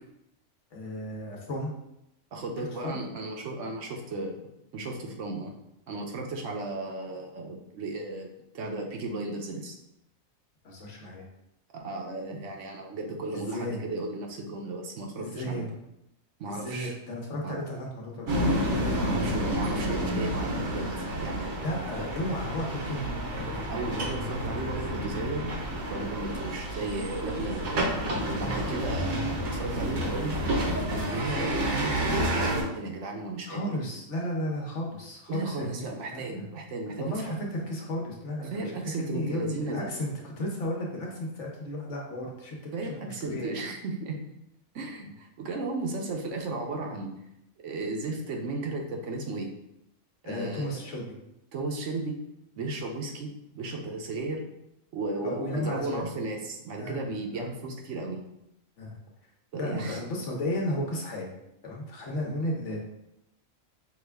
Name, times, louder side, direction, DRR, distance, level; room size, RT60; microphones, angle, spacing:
voice 1, 0.7-1.7 2.6-3.0 10.6-11.2 13.3-13.8 15.2-15.7 16.5-18.4 21.6-23.1 28.4-28.5 33.5-36.4 36.9-38.8 39.1-43.5 50.2-51.0 55.2-56.0 56.8-57.0 57.3-57.5 58.8-59.0 59.6-61.3 61.6-62.8, left 1 dB, 60° left, -1 dB, 1.2 m, -34 dB
voice 2, 2.3-4.3 4.7-5.5 5.9-8.3 8.5-9.8 11.7-15.6 16.4-17.0 17.4-17.6 19.0-21.5 23.7-25.5 25.9-27.9 28.3-30.4 31.1-33.7 35.3-37.4 38.5-39.9 42.7-44.2 44.7-47.1 47.6-49.5 50.2-50.8 51.5-52.2 52.6-54.4 54.9-58.2 59.5-60.0, right 2 dB, 65° right, 2 dB, 0.9 m, -35 dB
sound 1, 18.3-32.6, right 1 dB, 90° right, 1.4 m, -30 dB
5.8 x 2.3 x 3.4 m, 0.84 s
omnidirectional pair, 1.4 m